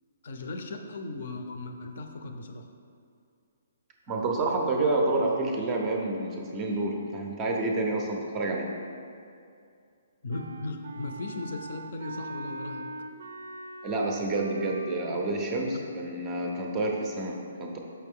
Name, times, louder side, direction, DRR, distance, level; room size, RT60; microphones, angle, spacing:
voice 1, 0.2-2.6 10.2-12.9, left 2 dB, 45° left, 5 dB, 0.5 m, -37 dB
voice 2, 4.1-8.7 13.8-17.8, right 2 dB, 15° right, 0 dB, 0.5 m, -29 dB
Wind instrument woodwind instrument, 10.3-15.2, right 2 dB, 65° right, 0.5 m, -40 dB
6.6 x 5.6 x 3.6 m, 2.4 s
hypercardioid pair, 175°, 0 cm